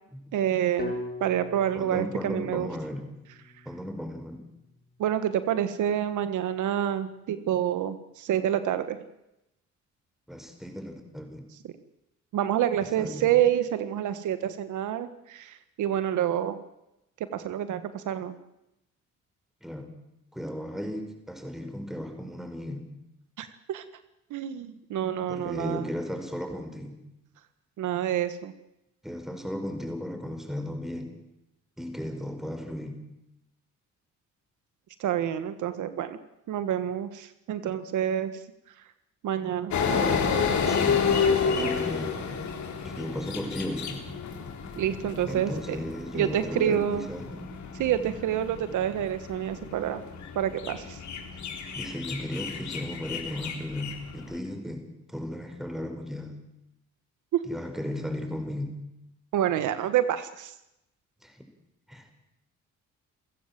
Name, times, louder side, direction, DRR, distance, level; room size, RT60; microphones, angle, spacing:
voice 1, 0.3-0.9 1.2-2.7 5.0-9.0 12.3-16.6 17.3-18.3 23.4-23.8 24.3-25.9 27.8-28.5 35.0-36.2 36.5-38.4 39.2-39.8 44.8-45.8 46.1-47.1 47.7-50.0 50.3-51.0 57.3-57.4 59.3-60.5, right 10 dB, 80° right, 11 dB, 1.5 m, -28 dB
sound 1, 0.8-4.8, left 2 dB, 30° left, 7.3 m, -41 dB
voice 2, 1.7-3.1 3.7-4.4 10.3-11.4 13.0-13.3 19.6-19.9 20.3-22.9 25.3-27.0 29.0-31.1 31.8-33.0 40.6-41.1 41.4-42.1 42.8-44.1 45.2-47.4 51.7-56.4 57.4-58.8 61.2-61.4 61.9-62.2, left 1 dB, ahead, 5 dB, 5.5 m, -35 dB
sound 2, 39.7-54.3, left 5 dB, 70° left, 4.1 m, -30 dB
29.5 x 15.5 x 7.6 m, 0.87 s
cardioid pair, 90°, 30 cm